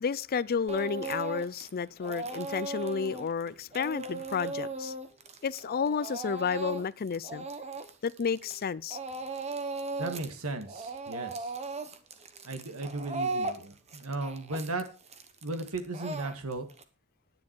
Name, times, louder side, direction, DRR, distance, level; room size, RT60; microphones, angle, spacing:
voice 1, 0.0-4.9 5.4-7.5 8.0-9.0, left 6 dB, 45° left, 0.4 m, -31 dB
Speech / Crying sobbing, 0.7-1.7 2.0-8.6 8.9-10.3 10.6-16.8, right 3 dB, 30° right, 1.1 m, -37 dB
voice 2, 10.0-11.5 12.5-14.8 15.4-16.7, right 2 dB, 70° right, 1.8 m, -36 dB
10.5 x 9.7 x 4.6 m
head